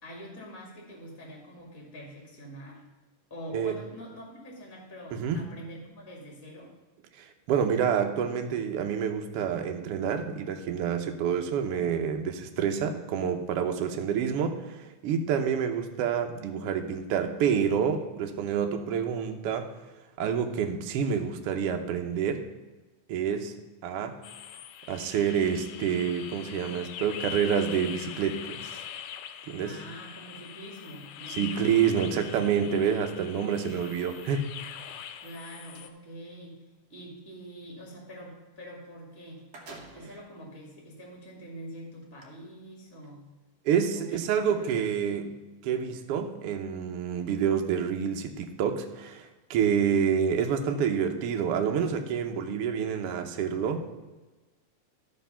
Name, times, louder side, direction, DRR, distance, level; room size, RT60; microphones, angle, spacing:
voice 1, 0.0-2.8 3.3-6.7 29.6-31.4 35.2-36.6 36.9-39.4 39.9-43.3 43.9-44.2 44.5-45.4, equal, 10° left, -2 dB, 1.9 m, -45 dB
voice 2, 5.1-5.4 7.2-19.7 20.2-22.4 23.1-23.5 23.8-24.2 24.9-28.8 29.5-29.7 31.3-34.5 43.6-45.3 45.6-54.0, right 7 dB, 70° right, 5 dB, 1.4 m, -28 dB
sound 1, 24.2-35.9, left 9 dB, 80° left, 1.7 m, -42 dB
sound 2, 35.1-35.9 38.8-38.9 39.2-40.3 41.0-41.1 42.0-42.2, right 2 dB, 55° right, 1.1 m, -49 dB
13.0 x 4.5 x 5.7 m, 1.2 s
omnidirectional pair, 3.5 m